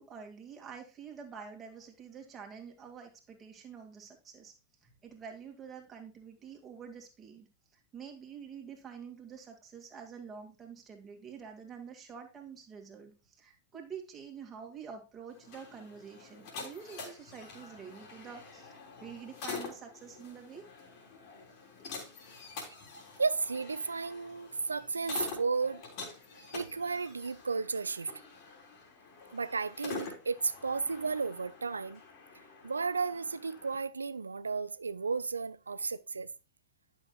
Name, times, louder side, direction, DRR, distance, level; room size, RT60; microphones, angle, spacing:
voice 1, 0.0-4.5 4.8-7.5 7.7-20.7, right 6 dB, 20° right, 2.4 m, -47 dB
sound 1, 15.3-33.8, left 4 dB, 45° left, 3.7 m, -46 dB
voice 2, 23.2-25.9 26.5-28.1 29.3-32.0 32.6-36.3, right 4 dB, 75° right, 0.4 m, -33 dB
11.5 x 6.5 x 2.4 m
figure-of-eight pair, 90°, 0 cm